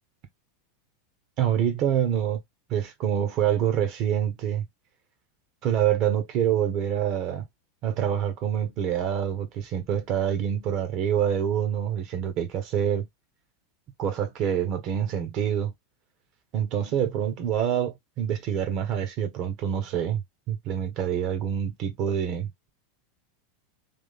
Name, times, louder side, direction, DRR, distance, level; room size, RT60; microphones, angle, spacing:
voice 1, 1.4-2.4 2.7-4.6 5.6-7.4 7.8-13.1 14.0-15.7 16.5-20.2 20.5-22.7, right 9 dB, 50° right, 1.4 m, -26 dB
3.7 x 3.3 x 3.8 m
hypercardioid pair, 90°, 0 cm